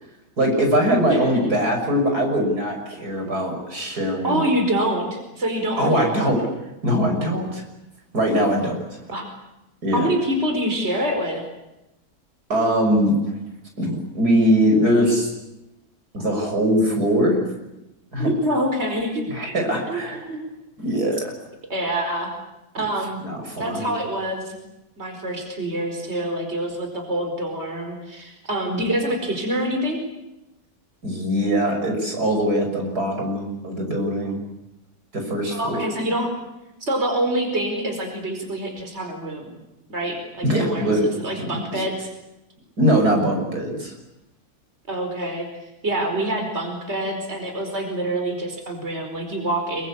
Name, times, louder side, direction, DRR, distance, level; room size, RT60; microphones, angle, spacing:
voice 1, 0.4-4.4 5.8-6.4 6.8-7.6 8.1-8.8 9.8-10.1 12.5-13.1 13.8-15.3 16.1-17.4 18.1-18.3 19.3-20.2 20.8-21.3 23.2-23.9 31.0-34.4 35.1-35.8 40.4-41.1 41.4-41.8 42.8-43.9, equal, 85° right, 3 dB, 6.8 m, -21 dB
voice 2, 1.1-1.5 4.2-6.3 9.1-9.3 9.9-11.4 18.2-19.2 19.9-20.0 20.3-20.4 21.7-22.3 22.7-23.2 23.6-24.6 25.0-30.0 35.5-36.3 36.8-39.6 39.9-42.1 44.9-45.5 45.8-49.9, right 1 dB, 45° right, 4 dB, 5.0 m, -26 dB
27.0 x 23.5 x 8.6 m, 0.93 s
omnidirectional pair, 1.6 m